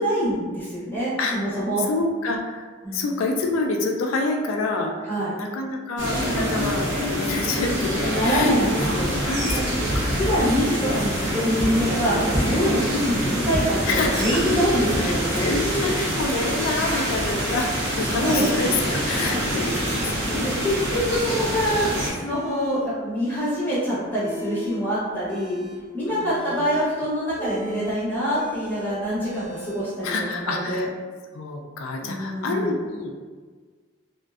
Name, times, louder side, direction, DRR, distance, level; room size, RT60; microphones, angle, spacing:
voice 1, 0.0-1.9 2.8-3.1 5.0-5.3 7.4-7.5 8.1-9.1 10.1-12.2 12.5-15.5 18.0-18.5 20.4-21.9 22.2-25.6 25.9-30.9 32.0-32.7, equal, 10° left, -10 dB, 0.8 m, -25 dB
voice 2, 1.2-2.6 2.9-4.9 5.3-10.2 13.9-14.6 15.0-21.1 26.1-26.6 30.0-30.9 31.3-33.3, left 3 dB, 85° left, 2 dB, 0.3 m, -28 dB
sound 1, 6.0-22.1, equal, 60° right, 0.6 m, -25 dB
sound 2, 22.3-22.8 23.2-23.8 24.0-24.8 25.2-29.8, left 1 dB, 15° right, 0.5 m, -37 dB
2.5 x 2.1 x 2.3 m, 1.5 s
head